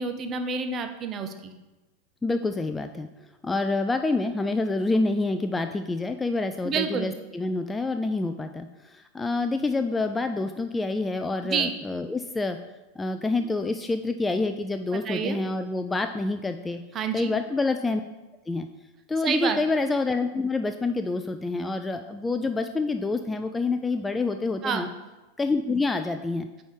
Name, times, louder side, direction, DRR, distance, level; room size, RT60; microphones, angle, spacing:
voice 1, 0.0-1.5 6.6-7.1 11.4-11.7 14.9-15.4 16.9-17.3 19.2-19.6 24.6-24.9, right 5 dB, 30° right, 7 dB, 0.7 m, -28 dB
voice 2, 2.2-3.1 3.4-12.6 13.0-16.8 17.1-18.0 18.5-18.7 19.1-24.9 25.4-26.5, left 3 dB, 10° left, 8 dB, 0.3 m, -27 dB
9.0 x 3.5 x 4.8 m, 1.1 s
figure-of-eight pair, 90°, 0 cm